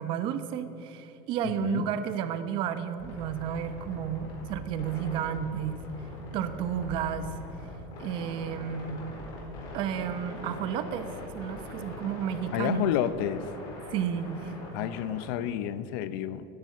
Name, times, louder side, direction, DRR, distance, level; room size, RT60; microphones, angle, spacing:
voice 1, 0.0-5.8 6.3-7.3 8.0-9.0 9.7-11.1 11.3-12.9 13.9-14.5, right 9 dB, 45° right, 11 dB, 0.9 m, -32 dB
voice 2, 1.4-1.9 12.5-13.5 14.7-16.5, left 11 dB, 70° left, 14 dB, 0.7 m, -30 dB
sound 1, 3.0-15.2, left 1 dB, 45° left, 4.1 m, -42 dB
11.0 x 10.5 x 8.4 m, 2.9 s
cardioid pair, 165°, 12 cm